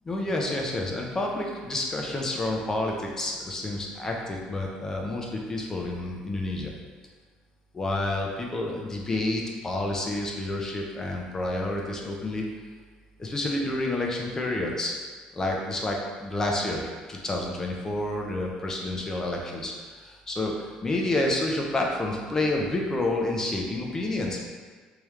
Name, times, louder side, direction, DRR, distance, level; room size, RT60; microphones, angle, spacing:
voice 1, 0.1-6.7 7.7-12.4 13.2-14.9 15.3-24.4, left 2 dB, 20° left, 0 dB, 0.5 m, -29 dB
3.4 x 3.2 x 3.0 m, 1.5 s
cardioid pair, 135°, 3 cm